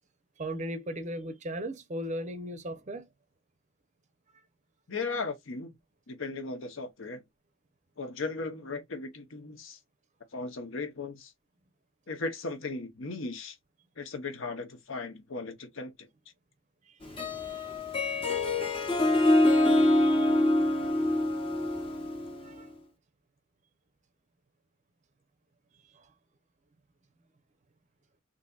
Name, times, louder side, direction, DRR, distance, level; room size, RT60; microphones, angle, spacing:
voice 1, 0.4-3.1 16.9-17.6 18.8-19.1 20.0-20.4 22.4-22.7 25.9-26.1, right 1 dB, 30° right, 0.6 m, -38 dB
voice 2, 4.9-5.7 6.1-7.2 8.0-9.8 10.3-11.3 12.1-13.6 14.0-16.1, left 3 dB, 60° left, 0.8 m, -37 dB
Harp, 17.0-22.6, left 1 dB, 25° left, 0.8 m, -25 dB
3.9 x 2.6 x 2.3 m
head